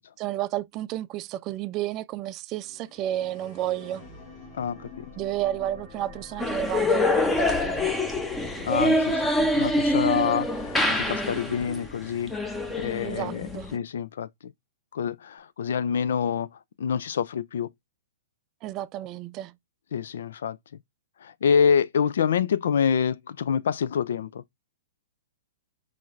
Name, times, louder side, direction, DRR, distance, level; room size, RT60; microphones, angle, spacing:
voice 1, 0.2-4.0 5.1-8.0 13.0-13.7 18.6-19.5, right 13 dB, 35° right, 0.3 m, -31 dB
sound 1, 2.6-12.8, left 2 dB, 30° left, 2.3 m, -46 dB
voice 2, 4.6-5.1 8.6-14.5 14.9-16.5 16.8-17.7 19.9-20.6 21.2-24.4, left 7 dB, 65° left, 0.4 m, -27 dB
sound 2, 6.4-13.8, left 1 dB, 10° left, 0.8 m, -25 dB
5.4 x 3.3 x 2.5 m
figure-of-eight pair, 115°, 0 cm